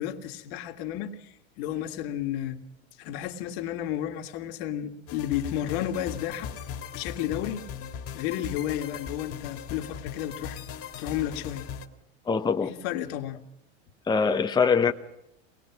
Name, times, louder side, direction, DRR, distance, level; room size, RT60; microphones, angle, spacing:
voice 1, 0.0-2.6 3.0-6.5 6.9-7.6 8.1-10.6 11.0-11.7 12.6-13.4, left 11 dB, 65° left, 1.8 m, -32 dB
sound 1, 5.1-11.9, left 7 dB, 45° left, 2.0 m, -39 dB
voice 2, 12.3-12.7 14.1-14.9, left 5 dB, 15° left, 0.9 m, -23 dB
23.0 x 20.0 x 6.0 m
hypercardioid pair, 100°, 33 cm